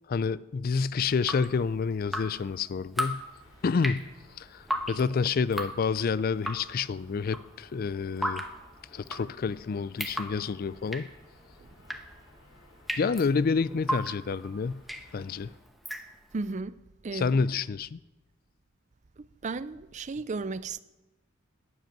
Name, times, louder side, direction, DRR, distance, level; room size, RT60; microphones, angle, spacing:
voice 1, 0.1-3.2 3.6-4.1 4.4-8.5 8.9-11.1 13.0-14.8 15.1-15.5 17.1-18.0, left 5 dB, 45° left, 0.4 m, -28 dB
Drip, 1.0-16.5, equal, ahead, 1.0 m, -37 dB
sound 1, 3.1-15.6, left 1 dB, 80° left, 4.5 m, -58 dB
voice 2, 16.3-16.8 17.0-17.4 19.2-20.8, right 3 dB, 35° right, 0.5 m, -35 dB
12.5 x 9.3 x 9.1 m
head